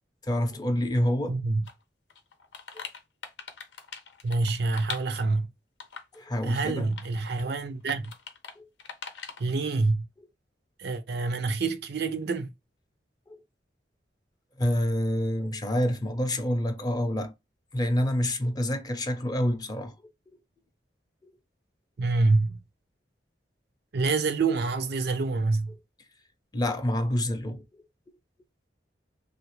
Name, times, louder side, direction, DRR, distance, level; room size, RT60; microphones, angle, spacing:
voice 1, 0.2-1.4 6.1-6.9 7.4-7.5 8.6-8.7 13.3-13.4 14.6-17.3 17.7-19.9 26.5-27.6, left 1 dB, 20° left, 0.5 m, -27 dB
voice 2, 1.3-1.6 4.2-5.5 6.4-8.1 9.4-10.1 10.8-12.5 22.0-22.6 23.9-25.7, right 3 dB, 65° right, 0.5 m, -26 dB
sound 1, 1.7-1.8 2.1-5.3 5.8-6.2 6.7-7.1 7.4-7.5 7.9-8.5 8.8-9.4, left 6 dB, 85° left, 0.7 m, -41 dB
3.2 x 2.4 x 3.0 m
head